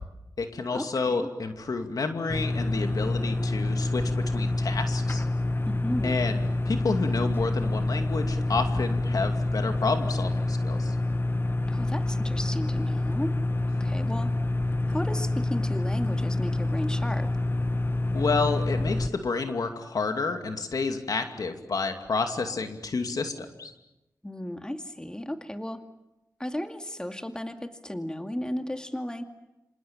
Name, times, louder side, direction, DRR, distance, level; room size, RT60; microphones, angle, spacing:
voice 1, 0.4-5.2 6.0-11.0 18.1-23.7, left 4 dB, 75° left, 5 dB, 2.5 m, -30 dB
sound 1, 2.3-19.1, left 2 dB, 35° left, 1.0 m, -27 dB
voice 2, 5.6-6.2 11.7-13.3 13.8-14.3 14.9-17.3 24.2-25.8 26.4-29.2, left 1 dB, 10° left, 6 dB, 2.3 m, -34 dB
27.0 x 26.5 x 7.3 m, 0.96 s
cardioid pair, 55°, 6 cm